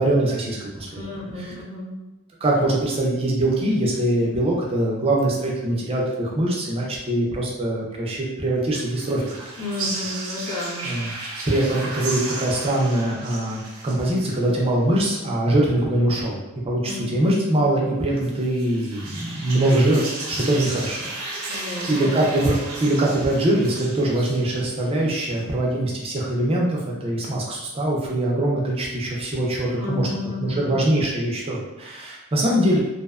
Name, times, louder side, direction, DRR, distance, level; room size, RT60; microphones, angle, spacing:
voice 1, 0.0-1.5 2.4-9.3 10.8-11.1 11.5-16.4 16.6-30.1 30.4-32.8, right 1 dB, 30° right, -3 dB, 0.5 m, -23 dB
voice 2, 0.9-2.1 9.6-11.0 16.8-17.1 21.5-22.3 29.8-30.9, left 2 dB, 90° left, -6 dB, 0.9 m, -32 dB
sound 1, 8.7-14.7 18.2-25.1, right 2 dB, 75° right, 0.6 m, -34 dB
2.5 x 2.1 x 2.3 m, 1.0 s
head